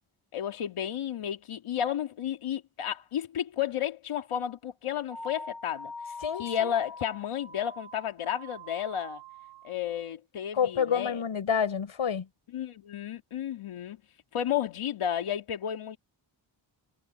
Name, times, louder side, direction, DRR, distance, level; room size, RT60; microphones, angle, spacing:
voice 1, 0.3-5.9 6.4-9.2 9.6-11.2 12.5-14.0 14.3-16.0, left 9 dB, 90° left, 2.5 m, -32 dB
sound 1, 5.1-9.7, left 2 dB, 50° right, 3.7 m, -44 dB
voice 2, 6.2-6.7 10.5-12.3, left 7 dB, 70° left, 5.3 m, -28 dB
cardioid pair, 50°, 49 cm